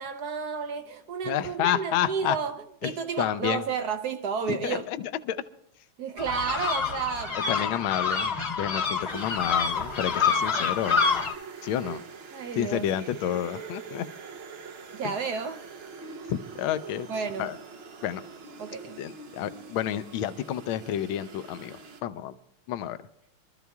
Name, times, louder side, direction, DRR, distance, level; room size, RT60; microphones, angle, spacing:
voice 1, 0.0-2.5 2.8-4.8 6.0-7.5 9.1-9.2 11.8-12.0 12.3-12.9 14.9-15.6 15.9-16.1 17.1-17.5 18.6-19.0, right 6 dB, 70° right, 1.0 m, -32 dB
voice 2, 1.2-2.4 2.8-2.9 3.2-3.6 4.5-5.4 7.5-11.0 11.6-12.0 12.6-14.1 15.0-15.1 16.3-17.1 17.4-17.6 18.0-18.2 19.0-22.3 22.7-23.0, left 11 dB, 75° left, 1.4 m, -30 dB
sound 1, 6.2-11.3, left 5 dB, 45° left, 0.9 m, -27 dB
sound 2, 9.1-22.0, right 5 dB, 85° right, 0.5 m, -44 dB
26.0 x 13.5 x 2.3 m
omnidirectional pair, 2.3 m